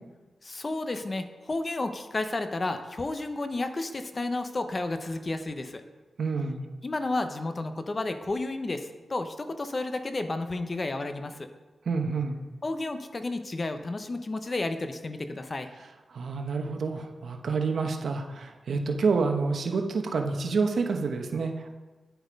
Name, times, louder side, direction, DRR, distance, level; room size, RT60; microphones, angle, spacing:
voice 1, 0.4-5.8 6.8-11.5 12.6-15.7, left 2 dB, 30° left, 8 dB, 0.7 m, -32 dB
voice 2, 6.2-6.6 11.9-12.4 16.1-21.7, right 4 dB, 70° right, 4 dB, 1.1 m, -28 dB
10.5 x 7.9 x 5.2 m, 1.2 s
wide cardioid pair, 130°, 0 cm